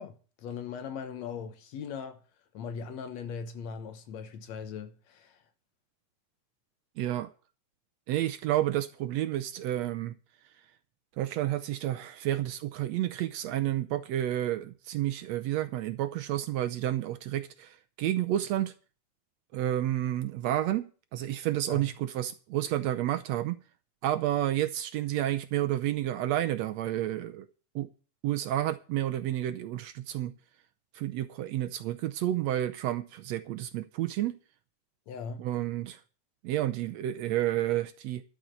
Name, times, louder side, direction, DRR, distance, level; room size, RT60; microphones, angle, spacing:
voice 1, 0.0-2.2 2.5-5.4 21.7-21.9 35.1-35.5, left 6 dB, 65° left, 2.2 m, -39 dB
voice 2, 7.0-7.3 8.1-10.2 11.2-18.7 19.5-23.6 24.0-27.5 27.8-27.9 28.2-30.3 31.0-34.4 35.4-36.0 36.4-38.2, right 13 dB, 75° right, 1.7 m, -30 dB
12.5 x 5.7 x 8.8 m
omnidirectional pair, 3.4 m